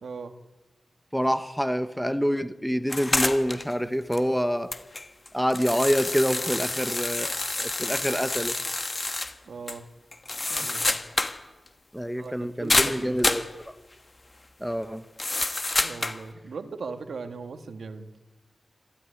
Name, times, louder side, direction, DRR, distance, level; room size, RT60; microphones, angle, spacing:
voice 1, 0.0-0.3 9.5-9.9 10.5-11.0 12.2-13.4 15.8-18.1, right 4 dB, 70° right, 1.6 m, -39 dB
voice 2, 1.1-4.7 5.3-8.6 11.9-13.8 14.6-15.0, equal, ahead, 0.9 m, -27 dB
sound 1, 2.9-3.7 4.1-4.2 4.7-9.3 9.7-9.8 10.1-11.4 11.7-11.8 12.7-13.5 15.2-16.2, left 2 dB, 25° left, 1.2 m, -28 dB
26.0 x 14.0 x 9.7 m
wide cardioid pair, 160°, 0 cm